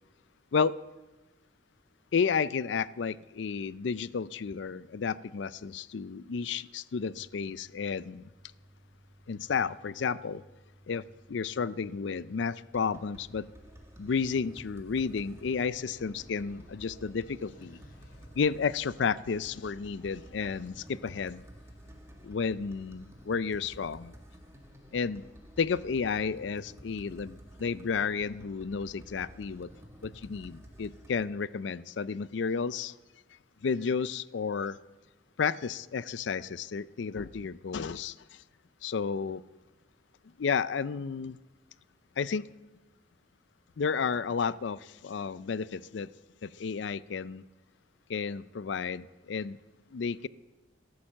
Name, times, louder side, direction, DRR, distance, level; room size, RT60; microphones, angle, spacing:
voice 1, 2.1-8.2 9.3-10.4 10.9-11.0 11.3-13.5 14.0-17.8 18.3-21.4 22.2-24.1 24.9-25.2 25.6-29.7 30.0-32.9 33.6-34.8 35.4-38.4 38.8-39.4 40.4-41.4 42.2-42.5 43.8-46.1 46.4-47.4 48.1-49.6 49.9-50.3, left 5 dB, 70° left, 0.4 m, -32 dB
sound 1, 6.9-17.1, equal, 35° right, 3.0 m, -59 dB
sound 2, 12.7-31.2, equal, 15° right, 1.8 m, -52 dB
sound 3, 14.9-21.4, equal, 50° left, 3.1 m, -61 dB
13.5 x 13.5 x 7.3 m
head